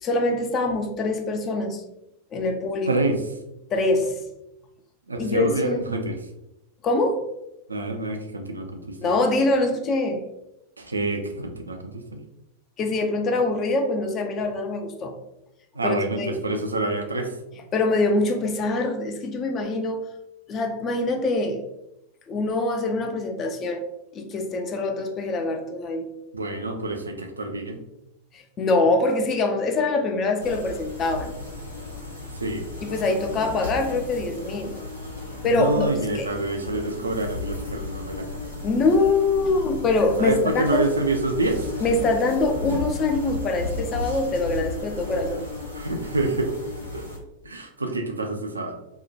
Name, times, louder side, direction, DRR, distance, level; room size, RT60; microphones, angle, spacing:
voice 1, 0.0-1.8 2.3-2.9 3.7-4.2 5.2-5.8 6.8-7.2 9.0-10.2 12.8-15.1 15.8-16.4 17.7-20.0 20.5-21.6 22.3-23.8 24.1-26.1 28.3-31.3 32.8-34.8 35.4-35.9 36.1-36.3 38.6-40.9 41.8-45.5, left 2 dB, 30° left, 5 dB, 0.4 m, -24 dB
voice 2, 2.9-3.2 5.1-6.1 7.7-9.1 10.8-12.2 15.8-17.3 26.3-27.8 32.3-32.7 35.4-38.4 40.2-41.6 45.7-46.5 46.9-47.1 47.4-48.8, right 2 dB, 80° right, 4 dB, 0.3 m, -27 dB
sound 1, 30.4-47.2, left 3 dB, 85° left, 0.6 m, -34 dB
2.7 x 2.1 x 2.4 m, 0.87 s
figure-of-eight pair, 90°, 0 cm